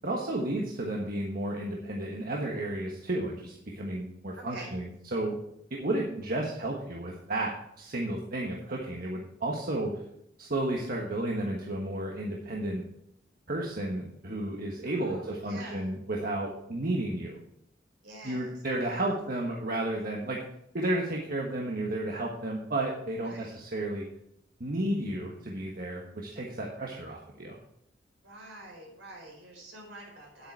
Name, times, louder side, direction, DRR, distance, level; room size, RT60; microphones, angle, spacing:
voice 1, 0.0-5.4 5.7-10.0 10.4-12.8 13.5-17.4 18.2-20.4 20.7-24.1 24.6-27.6, right 1 dB, 55° right, -1 dB, 1.3 m, -32 dB
voice 2, 4.4-4.7 14.8-15.9 18.0-18.5 18.8-19.1 23.2-23.6 28.2-30.5, right 2 dB, 75° right, 0 dB, 4.5 m, -47 dB
10.0 x 8.6 x 4.6 m, 0.76 s
head